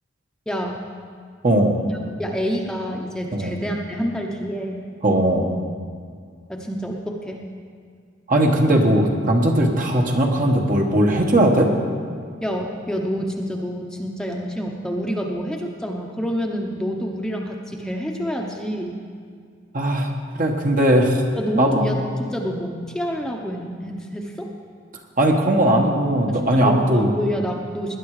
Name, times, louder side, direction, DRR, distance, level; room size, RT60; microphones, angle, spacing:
voice 1, 0.5-0.8 1.9-4.8 6.5-7.4 12.4-19.0 21.4-24.5 26.3-28.0, equal, 5° left, 0 dB, 1.0 m, -28 dB
voice 2, 1.4-1.8 3.3-3.5 5.0-5.5 8.3-11.7 19.7-20.1 20.4-21.2 21.6-21.9 25.2-27.1, right 1 dB, 45° right, 2 dB, 1.5 m, -18 dB
19.5 x 10.0 x 4.9 m, 2.1 s
head